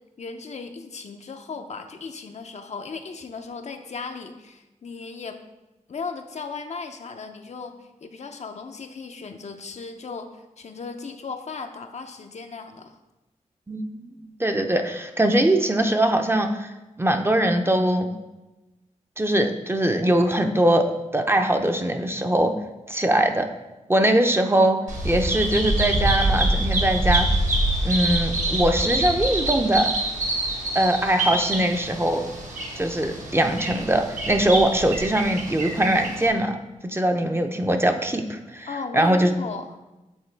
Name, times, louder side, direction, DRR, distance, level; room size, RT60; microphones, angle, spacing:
voice 1, 0.2-5.4 5.9-13.0 38.7-39.8, left 4 dB, 60° left, 6 dB, 0.5 m, -36 dB
voice 2, 13.7-16.7 17.0-18.1 19.2-22.5 22.9-23.5 23.9-24.8 25.0-27.3 27.8-29.9 30.7-32.2 32.7-38.7 38.9-39.3, right 1 dB, 20° right, 5 dB, 0.5 m, -22 dB
Bird vocalization bird call bird song, 24.9-36.3, right 1 dB, 70° right, 1.3 m, -26 dB
8.1 x 3.7 x 3.3 m, 1.0 s
cardioid pair, 55°, 13 cm